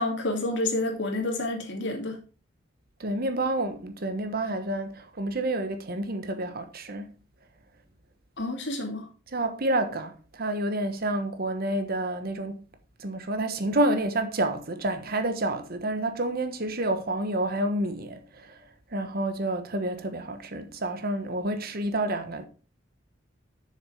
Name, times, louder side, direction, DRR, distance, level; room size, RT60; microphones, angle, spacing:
voice 1, 0.0-2.2 8.4-9.0, left 2 dB, 65° left, 2.5 m, -29 dB
voice 2, 3.0-7.1 9.3-12.6 13.0-18.6 18.9-22.5, right 1 dB, 55° right, 1.2 m, -29 dB
7.0 x 6.8 x 4.9 m
head